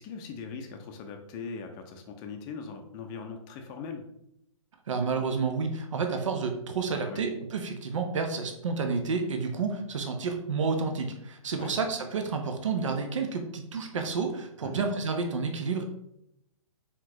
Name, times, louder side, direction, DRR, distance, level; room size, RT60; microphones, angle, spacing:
voice 1, 0.0-4.0 6.9-7.2 11.6-11.8 14.6-14.8, left 5 dB, 25° left, 5 dB, 0.5 m, -40 dB
voice 2, 4.9-15.9, right 4 dB, 65° right, 5 dB, 0.7 m, -30 dB
4.4 x 3.7 x 2.9 m, 0.78 s
figure-of-eight pair, 125°, 17 cm